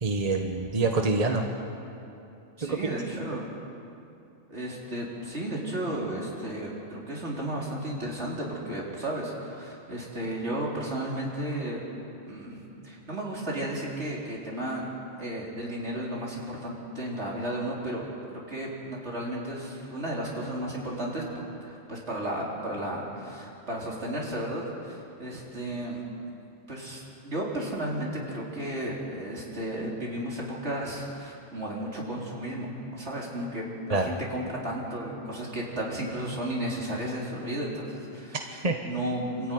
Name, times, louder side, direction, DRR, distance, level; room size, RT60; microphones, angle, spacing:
voice 1, 0.0-1.4 2.6-3.0 33.9-34.1 38.6-38.8, right 3 dB, 30° right, 3 dB, 1.3 m, -26 dB
voice 2, 2.6-3.5 4.5-11.8 12.3-14.9 15.2-26.0 26.7-39.5, right 1 dB, 60° right, -4 dB, 4.5 m, -34 dB
27.0 x 14.5 x 9.5 m, 2.8 s
omnidirectional pair, 1.3 m